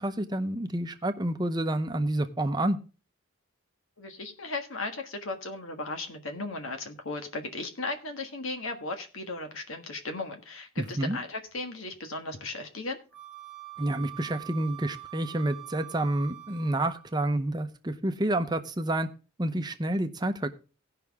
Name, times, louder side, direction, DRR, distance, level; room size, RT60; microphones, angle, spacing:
voice 1, 0.0-2.8 10.8-11.2 13.8-19.1 19.4-20.5, right 1 dB, 20° right, 8 dB, 0.7 m, -29 dB
voice 2, 4.0-13.0, left 2 dB, 75° left, 5 dB, 1.5 m, -36 dB
Wind instrument woodwind instrument, 13.1-17.2, right 17 dB, 5° right, 1.2 m, -45 dB
17.5 x 5.8 x 3.6 m, 0.33 s
head